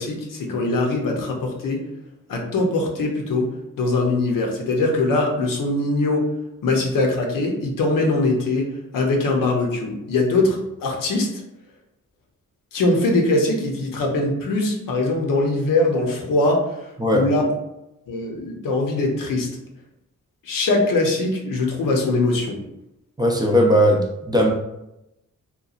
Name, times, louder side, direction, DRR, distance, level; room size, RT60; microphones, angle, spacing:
voice 1, 0.0-1.8 2.3-3.5 3.8-6.2 6.6-8.7 8.9-11.4 12.7-17.4 18.1-19.5 20.4-22.6, left 2 dB, 80° left, 1 dB, 0.7 m, -22 dB
voice 2, 23.2-24.5, equal, 10° right, -1 dB, 0.4 m, -18 dB
2.9 x 2.2 x 2.4 m, 0.87 s
cardioid pair, 85°, 33 cm